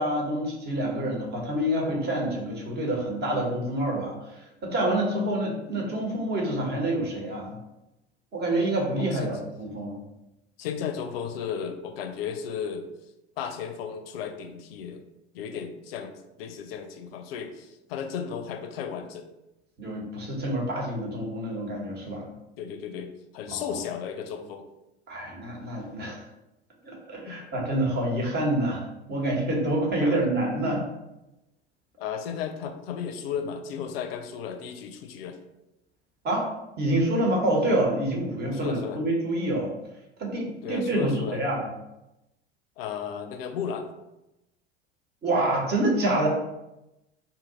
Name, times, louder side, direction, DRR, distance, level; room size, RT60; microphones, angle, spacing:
voice 1, 0.0-7.5 8.3-9.9 19.8-22.2 23.5-23.6 25.1-26.2 26.8-30.8 36.2-36.5 36.8-39.7 40.2-41.6 45.2-46.3, right 1 dB, 30° right, -1 dB, 1.0 m, -27 dB
voice 2, 10.6-12.9 13.4-15.0 15.3-19.3 22.6-24.6 27.3-27.4 30.0-30.2 32.0-35.4 38.5-39.0 40.6-41.4 42.8-43.9, left 7 dB, 60° left, 7 dB, 0.5 m, -34 dB
2.7 x 2.5 x 3.7 m, 0.94 s
figure-of-eight pair, 75°, 33 cm